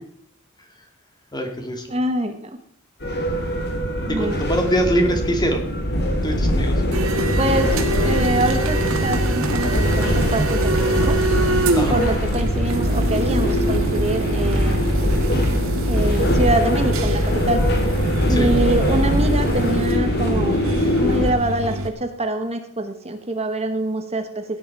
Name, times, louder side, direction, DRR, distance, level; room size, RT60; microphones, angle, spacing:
voice 1, 1.3-1.9 4.1-5.6 6.2-6.8 11.7-12.0 18.3-18.5, equal, 20° left, 4 dB, 2.4 m, -23 dB
voice 2, 1.9-2.5 4.1-4.4 7.4-7.8 8.0-11.2 11.9-15.1 15.9-17.6 18.3-20.6 21.0-24.4, right 1 dB, 30° right, 7 dB, 1.2 m, -25 dB
sound 1, 3.0-21.3, equal, 50° left, 2.6 m, -22 dB
sound 2, 6.9-21.9, right 1 dB, 90° right, 2.1 m, -24 dB
16.5 x 10.0 x 4.7 m, 0.62 s
head